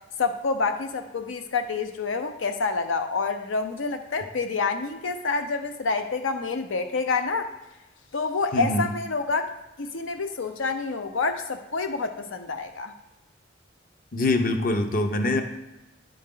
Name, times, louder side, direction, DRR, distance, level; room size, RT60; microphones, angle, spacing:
voice 1, 0.2-7.5 8.1-9.5 9.8-12.9, left 4 dB, 85° left, 7 dB, 0.6 m, -28 dB
voice 2, 8.5-8.9 14.1-15.4, left 2 dB, 45° left, 6 dB, 0.7 m, -24 dB
10.5 x 5.3 x 3.8 m, 1.0 s
head